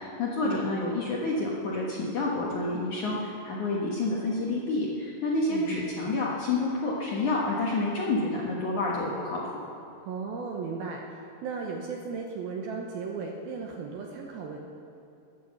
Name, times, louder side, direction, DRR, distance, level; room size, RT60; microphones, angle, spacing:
voice 1, 0.0-9.6, left 2 dB, 65° left, -4 dB, 2.0 m, -29 dB
voice 2, 5.5-5.9 10.0-14.6, right 5 dB, 70° right, 0 dB, 2.4 m, -36 dB
20.5 x 9.3 x 7.2 m, 2.6 s
omnidirectional pair, 5.4 m